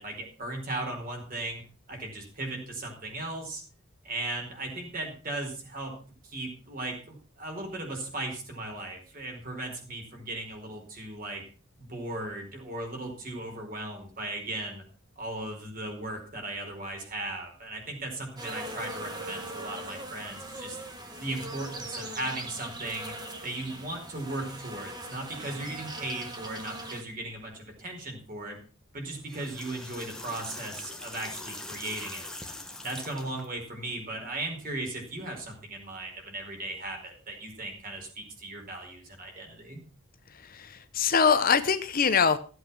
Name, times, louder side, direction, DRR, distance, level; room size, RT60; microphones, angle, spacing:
voice 1, 0.0-1.6 1.9-3.6 4.0-6.0 6.2-11.4 11.8-14.8 15.2-20.8 21.2-23.1 23.4-28.6 28.9-32.3 32.8-39.8, right 2 dB, 40° right, 2 dB, 4.6 m, -37 dB
sound 1, 18.4-27.0, right 1 dB, 20° right, 1.8 m, -40 dB
sound 2, 29.1-33.5, left 2 dB, 5° left, 1.5 m, -42 dB
voice 2, 40.3-42.4, left 6 dB, 40° left, 11 dB, 0.7 m, -24 dB
15.5 x 8.0 x 5.9 m, 0.38 s
head